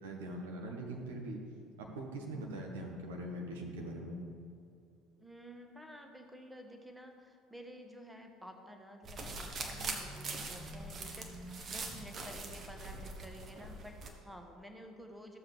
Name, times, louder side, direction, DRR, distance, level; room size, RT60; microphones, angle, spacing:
voice 1, 0.0-1.4 1.8-4.2, right 1 dB, 70° right, 1 dB, 1.1 m, -42 dB
voice 2, 5.2-15.4, equal, 5° right, 4 dB, 1.1 m, -51 dB
sound 1, 9.0-14.1, right 3 dB, 40° right, 1.2 m, -42 dB
14.0 x 7.2 x 3.3 m, 2.4 s
figure-of-eight pair, 60°, 0 cm